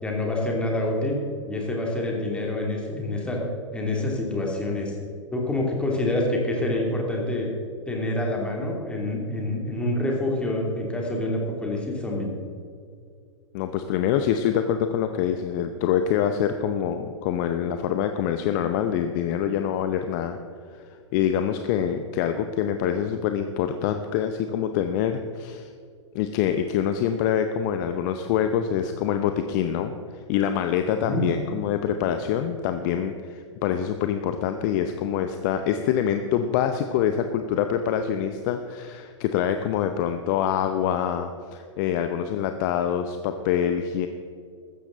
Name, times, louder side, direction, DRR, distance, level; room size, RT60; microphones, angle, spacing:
voice 1, 0.0-1.2 1.5-3.4 3.7-5.0 5.3-7.5 7.9-12.3 31.0-31.3, left 1 dB, 5° left, -1 dB, 2.8 m, -27 dB
voice 2, 13.5-20.4 21.1-25.7 26.1-44.1, left 9 dB, 40° left, 8 dB, 0.7 m, -25 dB
15.0 x 13.0 x 3.9 m, 2.3 s
figure-of-eight pair, 105°, 16 cm